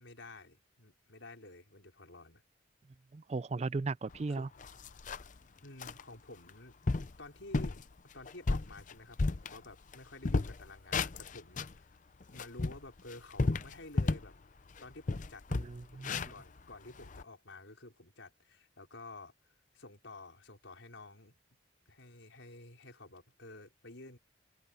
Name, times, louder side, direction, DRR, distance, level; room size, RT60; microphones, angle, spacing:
voice 1, 0.0-2.4 4.3-4.5 5.6-7.8 8.1-11.9 12.3-14.3 14.8-15.4 15.9-19.3 19.7-21.3 21.9-24.2, left 2 dB, 80° left, 4.9 m, -51 dB
voice 2, 3.1-4.5 15.5-16.2, right 3 dB, 35° right, 0.4 m, -36 dB
sound 1, 4.1-4.2 4.6-5.4 5.8-6.0 6.5-6.6 6.9-7.2 7.5-7.8 8.3-10.0 10.2-11.8 12.2-14.3 14.7-14.8 15.1-17.2, left 3 dB, 40° left, 0.6 m, -33 dB
open air
head